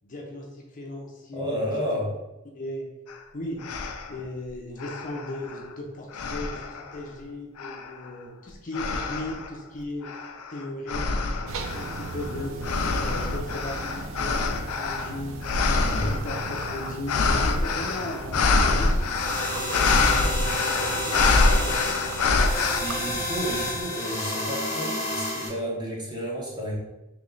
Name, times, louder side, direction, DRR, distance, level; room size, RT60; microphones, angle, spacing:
voice 1, 0.0-1.9 2.5-2.9 3.3-3.6 4.1-10.1 10.5-11.1 11.5-19.1 19.6-21.8, left 1 dB, 40° left, -1 dB, 0.6 m, -37 dB
voice 2, 1.3-2.1 15.6-16.1 22.8-26.7, equal, 20° right, -4 dB, 1.1 m, -31 dB
sound 1, 3.1-3.2 3.6-4.2 4.8-5.7 6.1-7.0 7.6-8.1 8.7-9.5 10.0-22.8, left 3 dB, 85° left, 0.4 m, -26 dB
sound 2, 11.5-23.8, right 3 dB, 65° right, 0.4 m, -37 dB
sound 3, 19.1-25.5, left 1 dB, 15° left, 0.9 m, -30 dB
3.1 x 3.0 x 3.8 m, 0.99 s
head